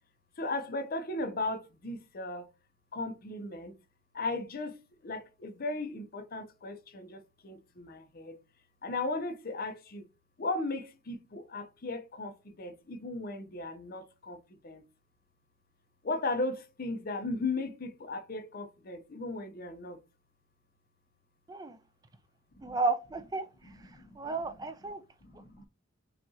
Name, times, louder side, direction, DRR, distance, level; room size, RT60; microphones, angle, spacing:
voice 1, 0.4-2.5 2.9-3.8 4.1-4.8 5.0-8.4 8.8-10.1 10.4-14.4 14.6-14.8 16.0-20.0 22.6-22.8 23.9-24.4 25.2-25.7, left 2 dB, 50° left, 0.7 m, -36 dB
voice 2, 22.6-23.4 24.2-25.0, right 3 dB, 20° right, 0.4 m, -32 dB
5.7 x 2.4 x 2.7 m
head